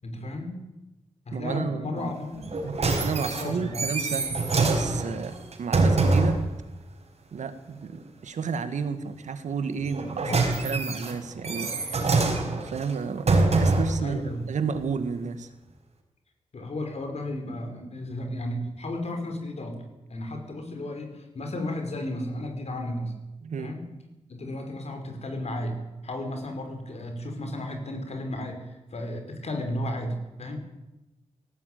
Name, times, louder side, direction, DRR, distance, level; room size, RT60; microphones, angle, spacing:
voice 1, 0.0-0.6 1.3-2.5 3.4-3.9 10.3-10.5 10.7-10.9 14.0-14.4 16.5-19.8 20.1-23.1 23.6-23.9 24.3-25.8 26.0-30.6, left 1 dB, 65° left, 5 dB, 5.4 m, -34 dB
voice 2, 1.3-2.1 2.6-6.4 7.3-12.0 12.5-13.3 13.6-15.5 23.4-23.7, right 5 dB, 90° right, 9 dB, 1.9 m, -32 dB
sound 1, 2.4-6.5 9.8-14.0 14.8-14.9, right 3 dB, 65° right, 4.9 m, -25 dB
18.0 x 17.0 x 9.4 m, 0.98 s
wide cardioid pair, 80°, 12 cm